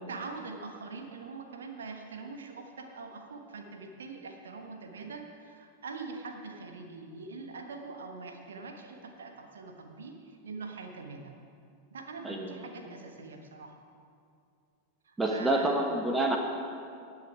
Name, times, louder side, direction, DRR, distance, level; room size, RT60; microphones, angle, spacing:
voice 1, 0.1-11.3 11.9-13.8 15.0-15.8, right 4 dB, 65° right, 4 dB, 1.2 m, -43 dB
voice 2, 12.2-12.9 15.2-16.4, right 1 dB, 10° right, 2 dB, 1.1 m, -28 dB
19.0 x 6.3 x 4.7 m, 2.3 s
figure-of-eight pair, 90°, 0 cm